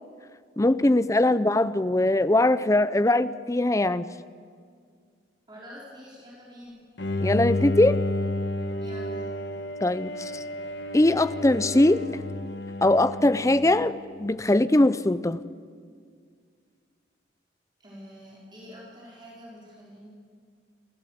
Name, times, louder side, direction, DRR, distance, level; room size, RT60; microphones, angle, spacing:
voice 1, 0.6-4.1 7.2-8.0 9.8-10.4 10.9-12.0 12.8-15.4, left 1 dB, 15° left, 15 dB, 0.5 m, -21 dB
voice 2, 5.5-6.8 8.8-9.2 17.8-20.1, equal, 25° right, -5 dB, 4.2 m, -46 dB
Bowed string instrument, 7.0-14.2, left 1 dB, 65° left, 1.4 m, -31 dB
27.0 x 14.5 x 8.0 m, 2.1 s
head